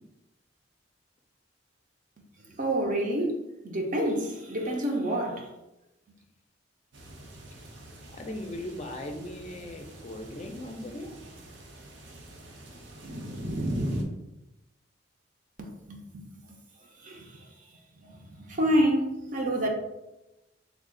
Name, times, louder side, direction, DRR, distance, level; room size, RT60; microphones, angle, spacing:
voice 1, 2.5-5.5 15.6-16.2 17.0-17.5 18.0-19.7, right 1 dB, 45° right, 0.6 m, -28 dB
sound 1, 6.9-14.0, right 1 dB, 80° right, 0.7 m, -38 dB
voice 2, 8.1-11.1, left 1 dB, 35° left, 0.4 m, -38 dB
3.5 x 2.4 x 3.7 m
head